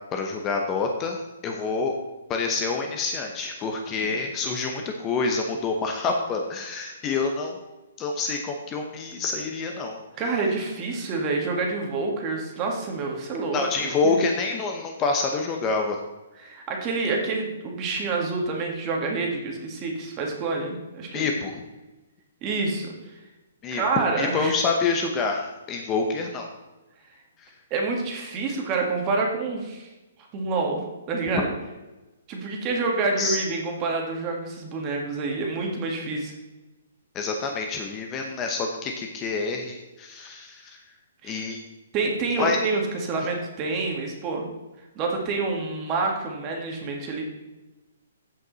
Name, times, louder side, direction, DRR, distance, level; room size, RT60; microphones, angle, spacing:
voice 1, 0.1-1.9 2.3-7.6 8.0-10.0 13.5-16.0 21.1-21.6 23.6-26.5 27.4-27.5 33.2-33.4 37.1-40.8 41.2-41.6 42.4-42.6, left 4 dB, 20° left, 3 dB, 0.9 m, -27 dB
voice 2, 10.2-14.2 16.4-21.3 22.4-22.9 23.7-24.5 27.7-29.9 30.3-30.8 31.1-31.5 32.3-36.3 41.2-41.4 41.9-44.5 45.0-47.3, right 3 dB, 25° right, 1 dB, 1.9 m, -27 dB
15.0 x 5.3 x 4.1 m, 1.1 s
hypercardioid pair, 160°, 0 cm